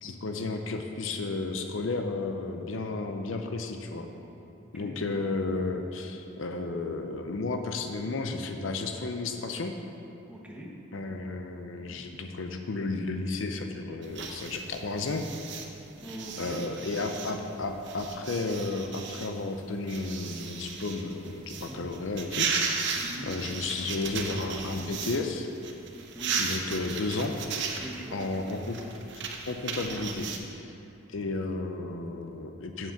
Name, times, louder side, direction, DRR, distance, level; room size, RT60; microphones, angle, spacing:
voice 1, 0.0-4.1 4.7-9.7 10.9-15.2 16.4-22.5 23.2-25.5 26.4-27.3 28.1-28.8 29.5-30.3 30.5-30.7 31.1-32.9, left 3 dB, 65° left, 5 dB, 0.6 m, -33 dB
voice 2, 10.3-10.7 11.8-12.0 16.0-17.0 21.7-21.9 22.9-23.3 26.1-26.4 27.8-28.2, right 1 dB, 5° right, -3 dB, 1.0 m, -43 dB
sound 1, 14.0-25.2 25.5-30.4, right 5 dB, 60° right, 0.8 m, -35 dB
7.5 x 5.7 x 7.2 m, 2.8 s
head